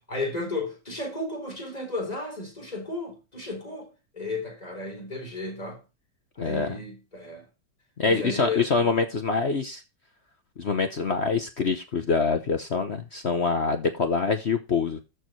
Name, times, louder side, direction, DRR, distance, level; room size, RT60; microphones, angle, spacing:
voice 1, 0.1-3.9 4.1-5.8 6.4-7.5 8.0-8.9, left 2 dB, 20° left, 4.3 m, -34 dB
voice 2, 6.4-6.7 8.0-9.8 10.6-15.0, left 4 dB, 45° left, 1.0 m, -25 dB
13.5 x 4.9 x 4.6 m
omnidirectional pair, 2.0 m